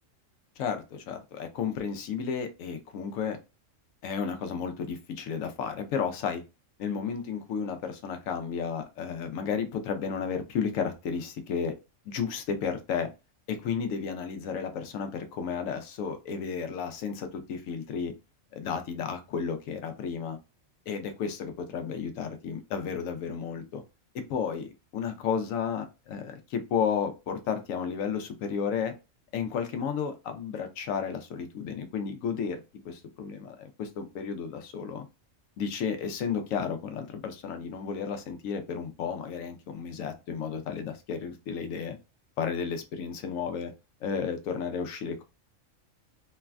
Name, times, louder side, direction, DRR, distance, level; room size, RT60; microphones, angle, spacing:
voice 1, 0.6-3.4 4.0-6.4 6.8-11.7 12.1-13.1 13.5-18.1 18.5-20.4 20.9-23.8 24.1-28.9 29.3-35.1 35.6-42.0 42.4-43.7 44.0-45.2, left 6 dB, 85° left, 7 dB, 1.0 m, -33 dB
3.2 x 2.2 x 2.3 m, 0.27 s
omnidirectional pair, 1.3 m